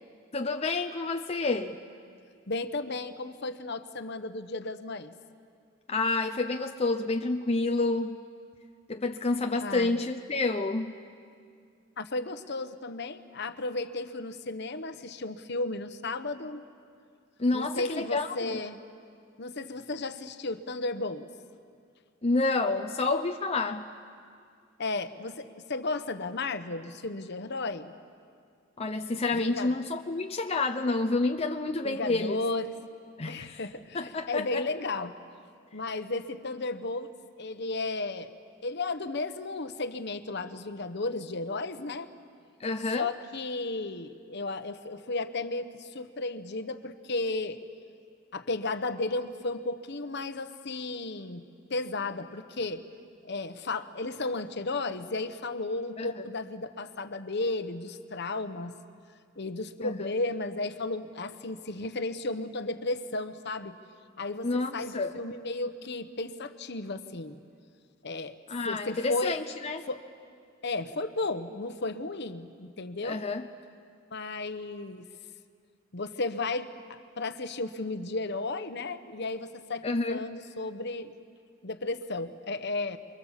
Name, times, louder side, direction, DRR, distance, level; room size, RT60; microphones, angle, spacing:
voice 1, 0.3-1.8 5.9-8.2 8.9-11.0 17.4-18.6 22.2-23.9 28.8-32.4 33.2-33.6 33.9-34.6 42.6-43.1 56.0-56.1 59.8-60.1 64.4-65.1 68.5-69.8 73.0-73.5 79.8-80.2, left 3 dB, 30° left, 5 dB, 0.7 m, -29 dB
voice 2, 2.5-5.1 9.6-9.9 12.0-16.6 17.5-18.8 19.4-21.2 24.8-27.9 29.3-29.7 31.8-32.8 33.3-35.1 35.7-37.1 37.4-38.3 38.6-42.1 43.0-47.6 48.3-51.4 51.7-52.8 53.2-58.7 59.4-63.8 64.2-67.4 68.0-68.4 68.6-69.4 69.9-70.0 70.6-73.2 74.1-75.1 75.9-76.7 77.2-81.1 81.6-83.0, left 2 dB, 55° left, 9 dB, 1.1 m, -34 dB
28.0 x 23.0 x 7.4 m, 2.3 s
head